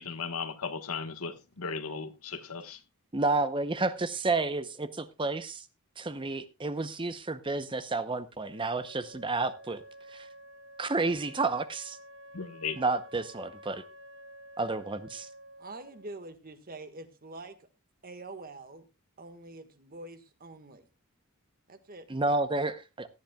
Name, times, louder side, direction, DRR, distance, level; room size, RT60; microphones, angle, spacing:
voice 1, 0.0-2.8 12.3-12.8, left 5 dB, 75° left, 1.3 m, -36 dB
voice 2, 3.1-5.6 6.0-9.8 10.1-10.3 10.8-12.0 12.8-13.8 14.6-15.3 22.1-23.1, right 3 dB, 25° right, 0.7 m, -30 dB
Wind instrument woodwind instrument, 8.5-16.2, equal, 60° right, 1.1 m, -51 dB
voice 3, 15.6-17.7 18.0-18.8 19.2-20.9 21.7-22.1, right 2 dB, 40° right, 1.6 m, -45 dB
17.5 x 12.0 x 2.3 m
head